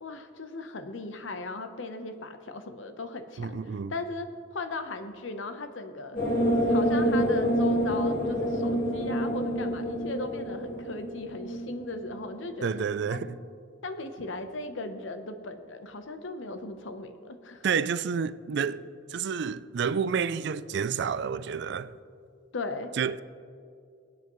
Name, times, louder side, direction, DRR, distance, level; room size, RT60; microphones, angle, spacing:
voice 1, 0.0-6.2 6.7-12.8 13.1-13.2 13.8-17.7 22.5-22.9, left 3 dB, 80° left, 0.9 m, -37 dB
voice 2, 3.4-3.9 12.6-13.4 17.6-18.8 19.1-21.9 23.0-23.2, right 6 dB, 60° right, 0.4 m, -29 dB
sound 1, 6.2-12.5, equal, 45° left, 2.0 m, -27 dB
22.0 x 8.5 x 3.1 m
head